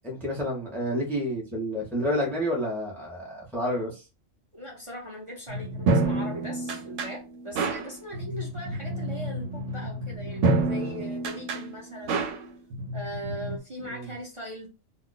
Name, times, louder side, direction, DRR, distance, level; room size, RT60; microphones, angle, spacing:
voice 1, 0.0-4.1 13.8-14.1, equal, ahead, -1 dB, 0.7 m, -29 dB
voice 2, 4.5-12.2 12.9-14.7, equal, 30° right, -2 dB, 0.8 m, -40 dB
sound 1, 5.5-13.6, right 2 dB, 80° right, 1.0 m, -29 dB
2.4 x 2.2 x 3.8 m, 0.29 s
omnidirectional pair, 1.3 m